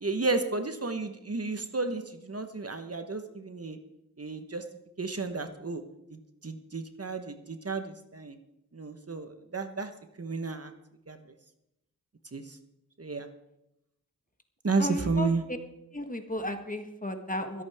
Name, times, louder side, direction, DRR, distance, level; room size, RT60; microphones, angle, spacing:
voice 1, 0.0-3.8 4.2-4.6 5.0-5.8 6.1-8.4 8.7-9.9 10.2-10.7 11.1-11.2 12.3-12.6 13.0-13.3 14.6-15.4, right 3 dB, 40° right, 7 dB, 1.2 m, -32 dB
voice 2, 14.8-15.6 15.9-17.6, left 1 dB, 20° left, 6 dB, 1.5 m, -34 dB
25.0 x 8.6 x 3.6 m, 0.85 s
cardioid pair, 50°, 37 cm